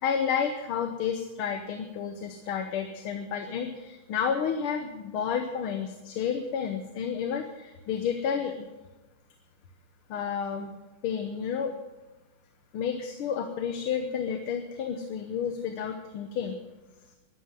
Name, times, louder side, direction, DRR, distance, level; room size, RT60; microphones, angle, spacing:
voice 1, 0.0-8.6 10.1-10.7 11.0-11.8 12.7-16.6, left 7 dB, 80° left, 7 dB, 1.8 m, -31 dB
11.5 x 11.0 x 7.5 m, 1.2 s
omnidirectional pair, 2.3 m